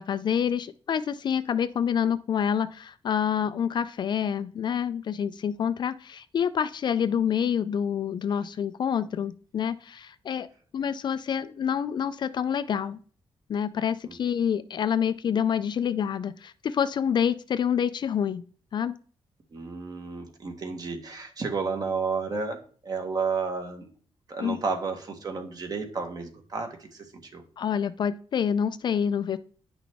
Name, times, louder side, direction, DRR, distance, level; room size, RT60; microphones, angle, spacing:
voice 1, 0.0-10.5 10.7-13.0 13.5-18.4 18.7-18.9 24.4-24.6 27.6-29.4, left 8 dB, 45° left, 12 dB, 0.4 m, -27 dB
voice 2, 19.5-23.9 24.3-27.4, right 4 dB, 40° right, 5 dB, 1.4 m, -32 dB
9.6 x 5.9 x 3.5 m, 0.43 s
wide cardioid pair, 170°, 10 cm